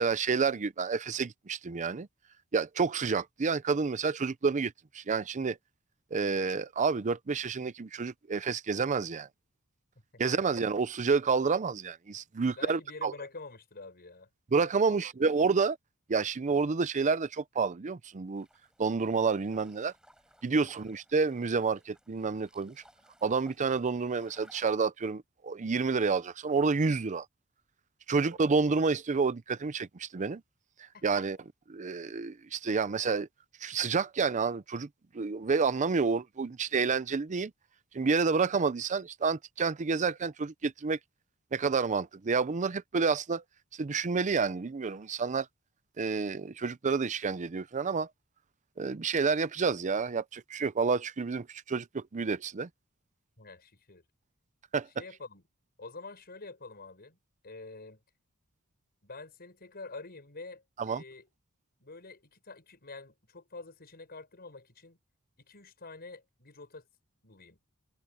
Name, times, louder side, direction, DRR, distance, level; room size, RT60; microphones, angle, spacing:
voice 1, 0.0-2.1 2.5-5.6 6.1-9.3 10.2-13.1 14.5-15.8 16.1-18.5 18.8-19.9 20.4-22.8 23.2-27.3 28.1-30.4 30.8-31.4 31.7-33.3 33.6-34.9 35.1-37.5 37.9-41.0 41.5-43.4 43.7-45.5 46.0-48.1 48.8-52.7 54.7-54.9 60.8-61.0, right 4 dB, 35° right, 0.5 m, -29 dB
voice 2, 12.5-14.3 14.8-15.0 20.5-20.8 28.1-28.4 30.9-31.1 53.4-54.0 55.0-55.4 55.8-57.2 57.4-58.0 59.0-61.3 61.8-65.0 65.4-66.9 67.2-67.6, left 3 dB, 45° left, 5.9 m, -47 dB
sound 1, 18.4-24.7, right 1 dB, 5° right, 6.5 m, -62 dB
head